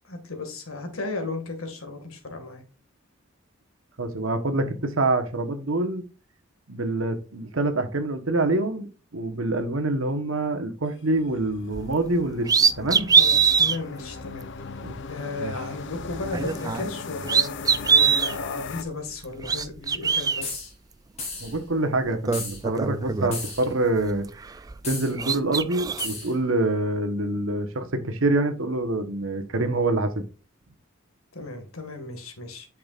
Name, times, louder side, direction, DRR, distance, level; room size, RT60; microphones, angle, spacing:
voice 1, 0.1-2.6 13.2-14.5 15.1-20.7 31.3-32.7, left 3 dB, 90° left, 1.9 m, -35 dB
voice 2, 4.0-6.0 6.7-8.9 9.1-12.5 12.8-13.1 14.8-14.9 15.4-15.5 21.4-24.3 24.8-30.1, right 2 dB, 70° right, 1.2 m, -26 dB
sound 1, 11.0-18.8, left 4 dB, 60° left, 0.6 m, -38 dB
sound 2, 11.7-11.9 12.4-13.8 14.4-14.5 16.2-17.0 17.2-18.3 19.2-20.4 21.6-21.7 22.1-23.7 24.1-24.9 25.2-26.1, right 6 dB, 20° right, 0.3 m, -22 dB
sound 3, 20.4-20.7 21.2-21.6 22.3-22.6 23.3-23.7 24.8-25.1 26.0-26.3, left 3 dB, 30° left, 3.3 m, -34 dB
8.5 x 6.0 x 2.5 m
head